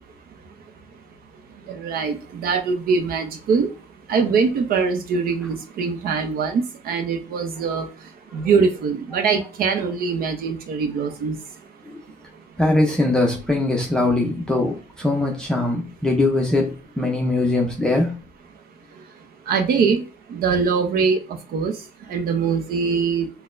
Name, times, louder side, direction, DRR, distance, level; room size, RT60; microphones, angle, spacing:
voice 1, 1.7-3.7 4.1-7.9 8.3-11.4 19.5-20.0 20.3-21.2 21.5-21.7 22.1-23.3, right 5 dB, 60° right, 0.7 m, -22 dB
voice 2, 12.6-18.2, left 2 dB, 5° left, 0.5 m, -21 dB
4.0 x 2.2 x 2.5 m
cardioid pair, 110°, 17 cm